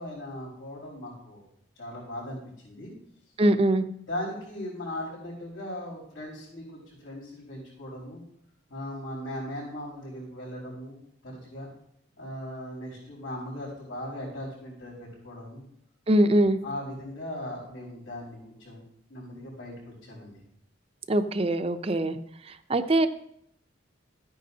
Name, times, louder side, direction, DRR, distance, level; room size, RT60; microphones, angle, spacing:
voice 1, 0.0-1.4 1.7-2.9 4.1-8.2 8.7-11.0 11.2-11.7 12.2-15.6 16.6-18.8 19.1-20.4, left 1 dB, 90° left, -8 dB, 4.8 m, -38 dB
voice 2, 3.4-3.9 16.1-16.6 21.1-22.2 22.4-23.1, right 1 dB, 30° right, 10 dB, 0.5 m, -22 dB
14.5 x 9.3 x 2.8 m, 0.72 s
head